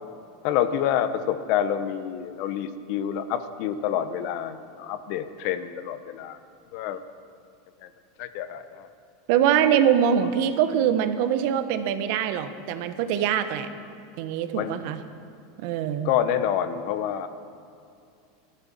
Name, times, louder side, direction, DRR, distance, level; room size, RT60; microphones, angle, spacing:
voice 1, 0.4-6.4 6.7-7.0 7.8-7.9 8.2-8.9 10.1-10.3 14.5-14.8 16.0-17.3, left 9 dB, 60° left, 11 dB, 1.1 m, -27 dB
voice 2, 9.3-13.7 14.2-15.0 15.6-16.1, right 9 dB, 65° right, 9 dB, 1.3 m, -23 dB
15.0 x 12.5 x 7.6 m, 2.5 s
hypercardioid pair, 100°, 0 cm